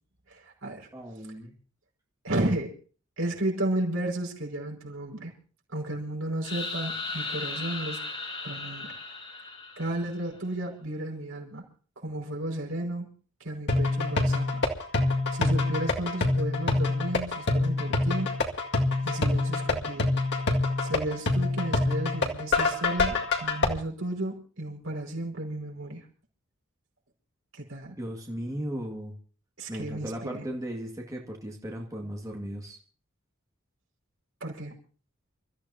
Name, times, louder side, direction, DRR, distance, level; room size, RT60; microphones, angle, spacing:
voice 1, 0.3-0.9 2.2-2.7 3.2-5.3 5.7-8.0 8.4-8.9 9.8-11.6 12.0-13.1 13.4-14.6 15.3-18.4 19.0-20.1 20.8-26.0 27.5-28.0 29.6-30.5 34.4-34.7, right 1 dB, 80° right, 0 dB, 5.4 m, -33 dB
voice 2, 0.9-1.5 28.0-29.1 29.7-32.8, equal, 15° right, 0 dB, 1.9 m, -36 dB
sound 1, 6.4-10.3, left 3 dB, 30° left, 3.4 m, -36 dB
sound 2, 13.7-23.7, left 3 dB, 60° left, 2.0 m, -26 dB
29.0 x 14.0 x 2.8 m, 0.41 s
head